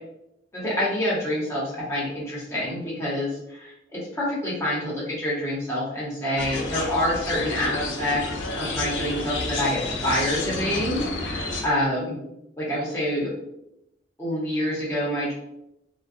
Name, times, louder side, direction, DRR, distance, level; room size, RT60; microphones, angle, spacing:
voice 1, 0.5-12.2 12.6-13.3 14.2-15.3, left 1 dB, 15° left, -7 dB, 0.8 m, -27 dB
sound 1, 6.4-11.6, left 2 dB, 85° left, 0.5 m, -30 dB
2.3 x 2.2 x 2.5 m, 0.83 s
head